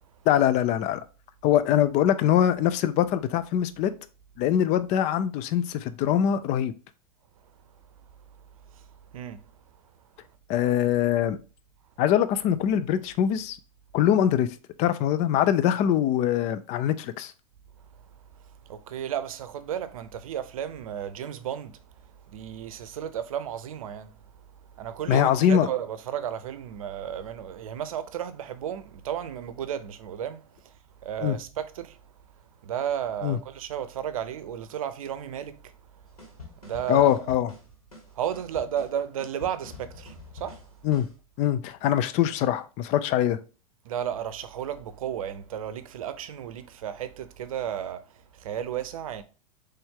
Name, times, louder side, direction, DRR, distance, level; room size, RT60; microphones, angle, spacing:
voice 1, 0.3-1.0 1.4-4.0 4.4-6.7 10.5-11.4 12.0-13.6 13.9-14.5 14.8-17.3 25.1-25.7 31.2-31.4 33.2-33.4 36.9-37.5 40.8-41.1 41.4-43.4, left 10 dB, 40° left, 0.4 m, -23 dB
voice 2, 9.1-9.4 18.7-24.2 24.7-32.0 32.6-35.7 36.6-37.3 38.1-40.7 43.8-49.2, right 9 dB, 70° right, 0.6 m, -33 dB
sound 1, 36.2-41.2, left 3 dB, 90° left, 2.1 m, -46 dB
4.3 x 3.4 x 3.6 m
hypercardioid pair, 95°, 19 cm